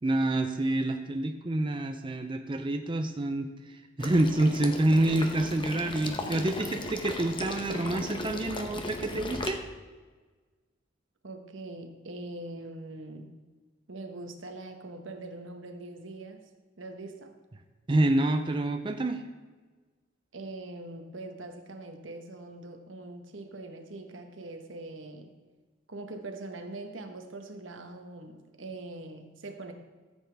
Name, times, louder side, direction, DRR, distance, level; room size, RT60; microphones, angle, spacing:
voice 1, 0.0-9.6 17.9-19.2, right 1 dB, 25° right, 5 dB, 0.6 m, -27 dB
Water / Liquid, 4.0-9.5, left 2 dB, 25° left, 0.9 m, -37 dB
voice 2, 11.2-13.3 13.9-16.5 16.8-17.4 20.3-25.3 25.9-29.7, right 2 dB, 80° right, 5 dB, 1.2 m, -42 dB
14.0 x 8.2 x 3.5 m, 1.3 s
head